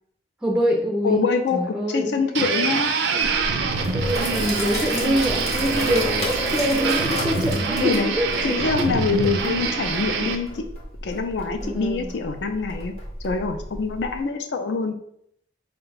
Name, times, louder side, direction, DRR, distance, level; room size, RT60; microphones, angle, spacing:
voice 1, 0.4-1.2 1.5-2.2 3.9-8.7 11.6-12.1, equal, 5° right, -1 dB, 0.4 m, -25 dB
voice 2, 1.0-2.9 7.8-8.1 8.4-10.6 11.0-12.9 13.2-14.9, left 4 dB, 75° left, 5 dB, 0.4 m, -25 dB
sound 1, 2.3-10.4, right 5 dB, 75° right, 0.4 m, -25 dB
Sink (filling or washing), 3.2-14.2, left 1 dB, 35° left, 0.8 m, -32 dB
4.3 x 2.2 x 3.9 m, 0.70 s
head